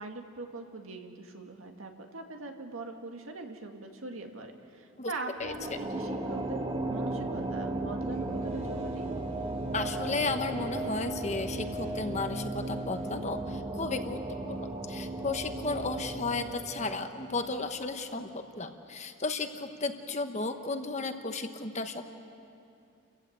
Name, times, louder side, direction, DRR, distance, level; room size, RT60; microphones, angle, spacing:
voice 1, 0.0-6.6 6.8-9.1, right 3 dB, 80° right, 4 dB, 2.0 m, -41 dB
sound 1, 5.4-18.0, right 2 dB, 25° right, 1.4 m, -36 dB
sound 2, 8.1-14.1, right 1 dB, 40° right, 4.0 m, -48 dB
voice 2, 9.7-14.2 14.5-22.1, left 3 dB, 35° left, 7 dB, 1.1 m, -34 dB
30.0 x 15.5 x 8.0 m, 2.6 s
head